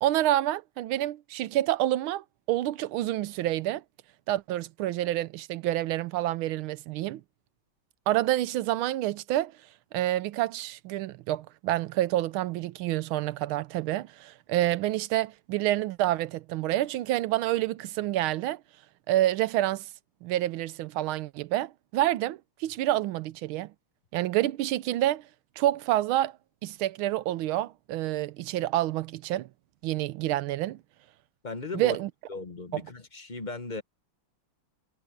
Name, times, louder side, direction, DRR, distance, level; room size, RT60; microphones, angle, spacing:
voice 1, 0.0-3.8 4.3-7.2 8.1-9.5 9.9-18.6 19.1-19.9 20.2-23.7 24.1-25.2 25.6-26.4 26.6-29.5 29.8-30.8 31.7-32.1 32.7-32.8, right 14 dB, 85° right, 1.5 m, -28 dB
voice 2, 31.4-32.0 32.3-33.8, left 3 dB, 25° left, 1.1 m, -36 dB
omnidirectional pair, 2.3 m